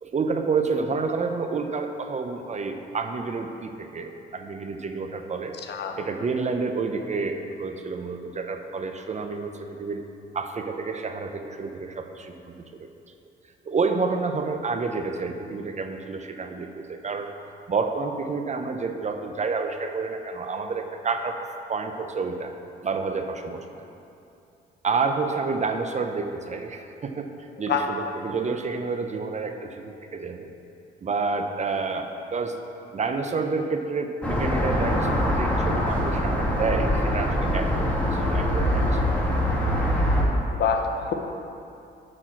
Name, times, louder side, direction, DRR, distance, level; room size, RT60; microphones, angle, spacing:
voice 1, 0.0-5.5 6.0-10.1 10.3-12.9 13.6-17.3 17.7-21.4 21.7-22.5 22.8-23.8 24.8-30.5 31.0-32.5 32.9-39.0, right 4 dB, 35° right, 6 dB, 0.7 m, -29 dB
sound 1, 34.2-40.2, equal, 5° left, 1.5 m, -23 dB
voice 2, 40.6-41.1, left 6 dB, 60° left, 4 dB, 0.9 m, -25 dB
8.9 x 4.4 x 6.0 m, 2.6 s
cardioid pair, 90°, 20 cm